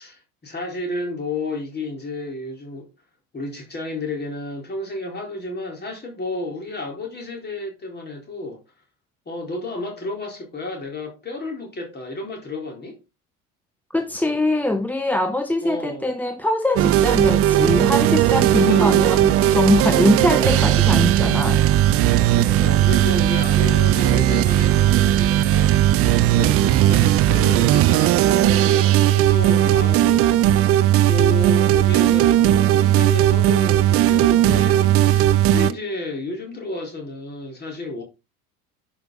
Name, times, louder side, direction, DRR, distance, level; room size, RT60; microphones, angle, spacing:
voice 1, 0.0-2.9 3.3-8.6 9.3-13.0 15.6-16.1 18.5-19.1 20.2-20.8 22.4-25.8 26.3-30.5 31.1-38.0, left 2 dB, 20° left, 4.0 m, -31 dB
voice 2, 13.9-21.6, left 1 dB, 5° left, 0.8 m, -22 dB
sound 1, 16.8-35.7, right 12 dB, 30° right, 0.6 m, -17 dB
10.5 x 5.8 x 4.0 m
figure-of-eight pair, 70°, 44 cm